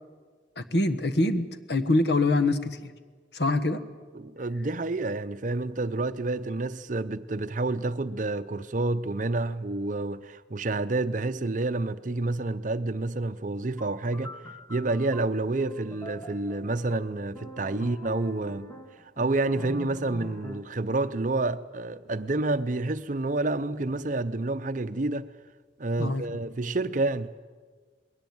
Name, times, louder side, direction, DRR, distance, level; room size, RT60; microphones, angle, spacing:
voice 1, 0.6-2.9 3.3-3.8 26.0-26.2, left 2 dB, 60° left, 1.3 m, -25 dB
voice 2, 4.1-14.4 14.7-18.7 19.2-25.3 25.8-27.4, right 2 dB, 45° right, 0.7 m, -29 dB
sound 1, 13.8-20.8, equal, 20° left, 1.2 m, -44 dB
21.0 x 18.0 x 9.5 m
head